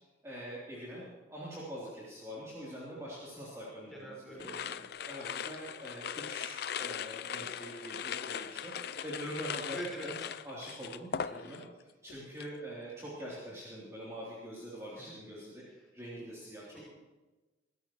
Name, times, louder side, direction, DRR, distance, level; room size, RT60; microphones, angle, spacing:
voice 1, 0.2-4.5 5.0-10.2 10.4-15.6 15.9-16.8, equal, 15° right, -8 dB, 3.4 m, -44 dB
voice 2, 3.9-4.9 9.7-10.1 15.0-15.2 16.7-16.9, right 2 dB, ahead, -4 dB, 5.5 m, -44 dB
sound 1, 4.4-11.8 12.1-12.6, left 8 dB, 55° left, 0.5 m, -39 dB
23.5 x 13.5 x 3.2 m, 1.2 s
head